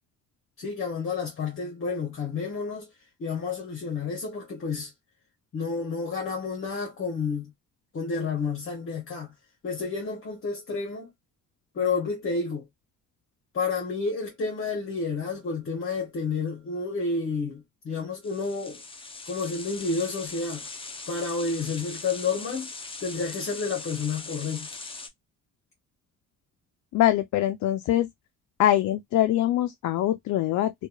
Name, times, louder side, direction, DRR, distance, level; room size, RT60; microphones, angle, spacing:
voice 1, 0.6-2.9 3.2-4.9 5.5-7.5 7.9-9.3 9.6-11.1 11.7-12.6 13.5-18.8 19.3-20.7 21.1-22.7 23.0-24.7, left 4 dB, 45° left, 1.0 m, -30 dB
sound 1, 18.2-25.1, left 3 dB, 20° left, 0.6 m, -40 dB
voice 2, 26.9-28.1 28.6-30.7, left 13 dB, 70° left, 0.4 m, -23 dB
2.8 x 2.3 x 2.2 m
cardioid pair, 90°, 30 cm